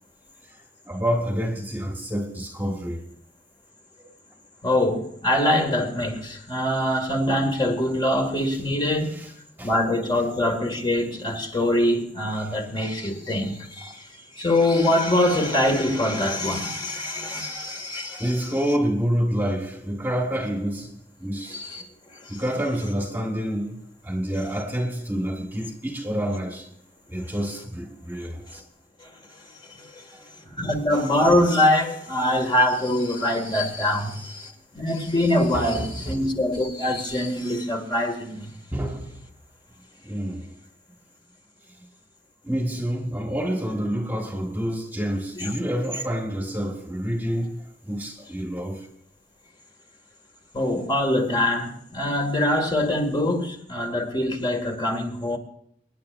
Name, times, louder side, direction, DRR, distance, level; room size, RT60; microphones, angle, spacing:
voice 1, 0.8-3.0 4.0-4.1 9.1-9.3 9.6-9.7 12.4-12.6 13.8-13.9 17.5-21.6 22.3-26.7 27.1-28.6 35.5-36.2 38.7-39.2 40.0-40.5 41.8-41.9 42.4-48.9, equal, 10° right, 1.6 m, -28 dB
voice 2, 4.6-9.2 9.6-14.0 14.4-18.3 21.5-21.8 22.3-22.4 29.8-30.0 30.5-38.5 45.4-45.5 50.5-55.4, left 1 dB, 25° left, 2.0 m, -24 dB
26.5 x 10.5 x 2.6 m
head